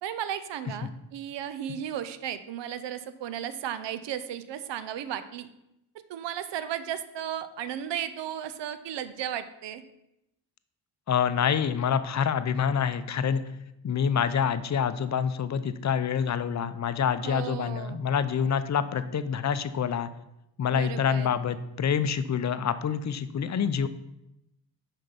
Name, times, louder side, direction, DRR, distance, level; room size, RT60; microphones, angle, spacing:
voice 1, 0.0-5.5 6.1-9.8 17.2-18.0 20.7-21.4, right 10 dB, 85° right, 12 dB, 0.6 m, -35 dB
voice 2, 11.1-13.4 13.8-20.1 20.6-23.9, left 7 dB, 40° left, 13 dB, 0.5 m, -27 dB
5.9 x 4.5 x 5.1 m, 0.86 s
cardioid pair, 60°, 42 cm